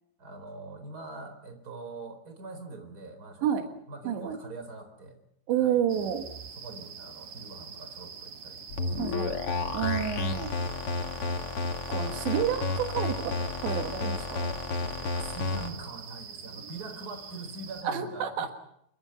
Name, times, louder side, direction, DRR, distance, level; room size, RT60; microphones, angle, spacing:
voice 1, 0.2-5.2 5.6-5.8 6.5-9.4 11.9-12.3 14.9-18.5, right 3 dB, 20° right, 6 dB, 4.2 m, -43 dB
voice 2, 4.1-4.4 5.5-6.3 9.0-9.4 9.7-10.5 11.9-13.3 13.6-14.4 17.9-18.5, right 9 dB, 80° right, 5 dB, 3.8 m, -29 dB
sound 1, 5.9-17.8, right 6 dB, 60° right, 3.7 m, -45 dB
sound 2, 8.7-15.7, left 3 dB, 45° left, 2.0 m, -31 dB
28.0 x 23.0 x 5.8 m, 0.75 s
omnidirectional pair, 5.1 m